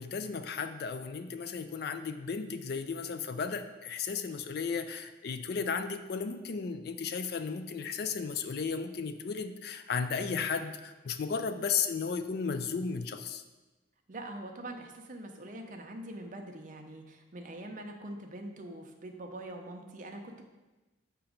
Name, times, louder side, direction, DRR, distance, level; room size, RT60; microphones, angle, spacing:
voice 1, 0.0-13.4, left 5 dB, 55° left, 8 dB, 0.4 m, -34 dB
voice 2, 14.1-20.4, right 1 dB, 40° right, 3 dB, 0.6 m, -43 dB
6.9 x 3.0 x 5.0 m, 1.1 s
head